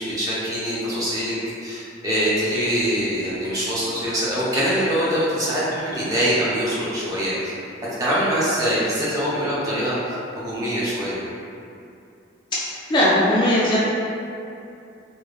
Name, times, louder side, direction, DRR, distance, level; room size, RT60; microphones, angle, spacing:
voice 1, 0.0-1.3 1.6-7.3 8.0-10.0 10.4-11.2, equal, 20° right, -9 dB, 0.6 m, -23 dB
voice 2, 12.5-13.8, left 1 dB, 25° left, -7 dB, 0.3 m, -19 dB
3.2 x 2.1 x 2.2 m, 2.6 s
head